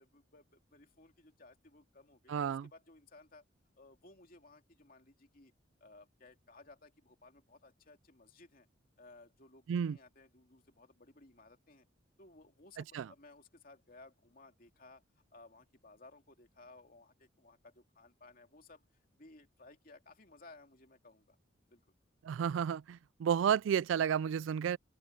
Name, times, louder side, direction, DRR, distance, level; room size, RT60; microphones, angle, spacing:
voice 1, 0.0-3.4 3.8-5.5 5.8-8.7 9.0-11.9 12.2-15.0 15.3-18.8 19.1-21.4 21.7-21.8, left 2 dB, 45° left, 2.7 m, -59 dB
voice 2, 2.3-2.7 9.7-10.0 12.9-13.1 22.2-24.8, right 8 dB, 70° right, 0.3 m, -31 dB
open air
head